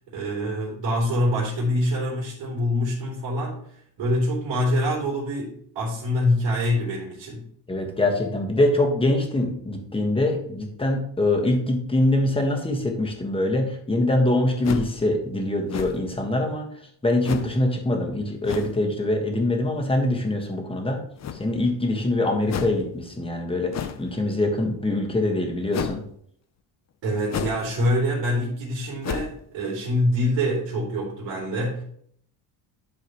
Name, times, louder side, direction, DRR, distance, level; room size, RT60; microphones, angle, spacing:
voice 1, 0.1-7.4 27.0-31.8, left 1 dB, 80° right, -4 dB, 3.2 m, -25 dB
voice 2, 7.7-16.7 17.0-21.0 21.3-26.0, left 1 dB, 10° left, 2 dB, 1.5 m, -24 dB
sound 1, 14.6-15.0 15.7-16.2 17.2-17.6 18.4-18.8 21.2-21.7 22.5-22.8 23.7-24.1 25.7-26.0 27.3-27.7 28.0-28.1 29.0-29.4, left 8 dB, 40° left, 0.6 m, -31 dB
11.0 x 4.8 x 3.0 m, 0.65 s
cardioid pair, 130°, 44 cm